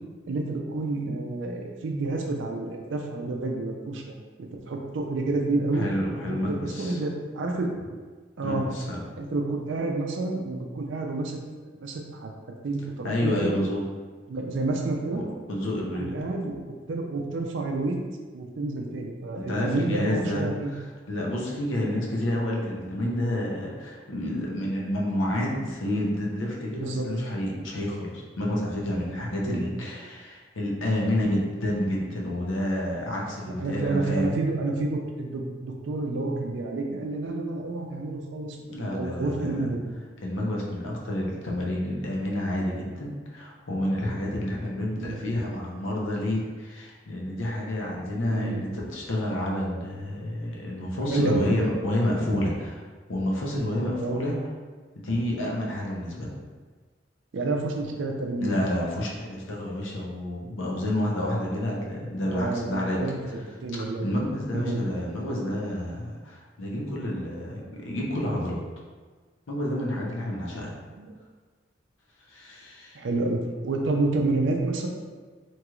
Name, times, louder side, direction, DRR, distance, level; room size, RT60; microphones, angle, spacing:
voice 1, 0.3-5.8 6.3-7.7 8.4-8.6 9.2-11.4 11.7-12.3 12.6-13.5 14.3-15.2 16.0-18.0 18.3-20.7 21.8-22.0 26.7-27.1 29.5-29.6 33.4-39.8 45.0-45.2 48.3-48.6 51.1-51.5 53.9-54.2 57.3-58.6 61.8-61.9 62.2-64.1 64.5-64.8 71.0-71.1 72.9-74.9, right 2 dB, 75° right, 1 dB, 0.4 m, -29 dB
voice 2, 5.7-7.0 8.4-9.0 13.0-13.8 15.1-16.2 19.3-20.8 21.1-34.3 38.7-39.7 40.2-52.8 53.1-54.3 55.0-56.3 58.4-63.0 63.8-68.6 69.5-70.7 72.3-73.0, left 1 dB, 85° left, -3 dB, 0.7 m, -29 dB
2.9 x 2.3 x 3.0 m, 1.5 s
head